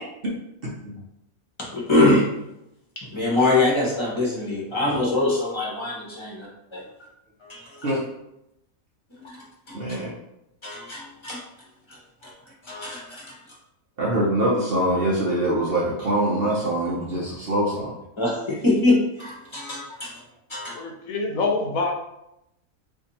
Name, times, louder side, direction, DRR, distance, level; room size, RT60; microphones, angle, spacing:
voice 1, 1.7-2.2 3.0-6.8 7.4-7.9 9.2-9.7 10.6-11.4 11.9-12.0 12.2-12.3 12.6-13.3 18.2-20.1 20.5-20.7, left 2 dB, 25° left, -5 dB, 0.9 m, -24 dB
voice 2, 9.7-10.1 14.0-17.9, right 1 dB, 55° right, -5 dB, 0.7 m, -24 dB
voice 3, 20.7-21.9, left 3 dB, 75° left, 2 dB, 1.0 m, -25 dB
2.7 x 2.7 x 4.0 m, 0.85 s
omnidirectional pair, 1.5 m